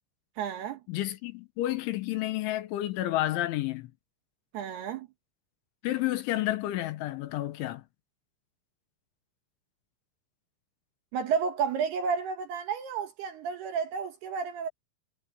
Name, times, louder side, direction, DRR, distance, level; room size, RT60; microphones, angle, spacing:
voice 1, 0.4-0.8 4.5-5.1 11.1-14.7, right 6 dB, 70° right, 2.7 m, -31 dB
voice 2, 0.9-3.9 5.8-7.8, left 15 dB, 75° left, 3.3 m, -30 dB
omnidirectional pair, 6.0 m